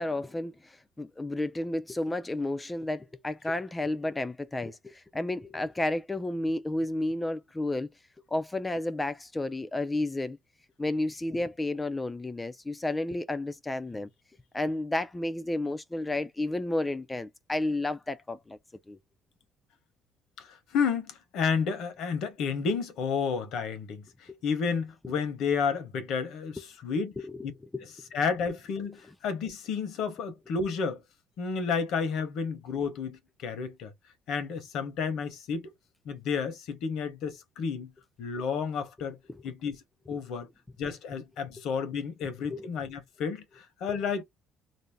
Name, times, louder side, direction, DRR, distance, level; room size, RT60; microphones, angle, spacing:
voice 1, 0.0-7.9 8.3-10.4 10.8-14.1 14.5-18.6 18.9-19.0 24.3-24.4 26.6-26.7 27.2-27.5 27.7-27.8 28.9-29.0 42.5-42.7, left 2 dB, 15° left, 0.3 m, -32 dB
voice 2, 20.4-27.2 27.4-27.5 28.1-31.0 31.4-33.9 34.3-35.7 36.0-37.9 38.2-39.2 39.4-39.8 40.1-40.5 40.8-44.2, left 5 dB, 70° left, 0.9 m, -31 dB
2.6 x 2.0 x 3.2 m
cardioid pair, 105°, 0 cm